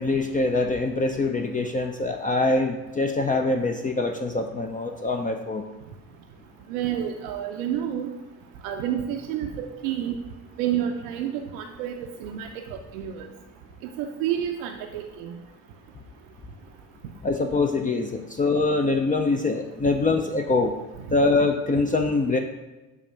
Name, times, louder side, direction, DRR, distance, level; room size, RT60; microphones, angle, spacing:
voice 1, 0.0-5.6 17.2-20.7 21.1-22.4, left 3 dB, 20° left, 4 dB, 0.4 m, -24 dB
voice 2, 6.7-8.1 8.6-10.2 10.6-13.3 13.8-15.3, right 10 dB, 80° right, 4 dB, 0.6 m, -29 dB
7.2 x 2.5 x 5.5 m, 1.1 s
hypercardioid pair, 75°, 41 cm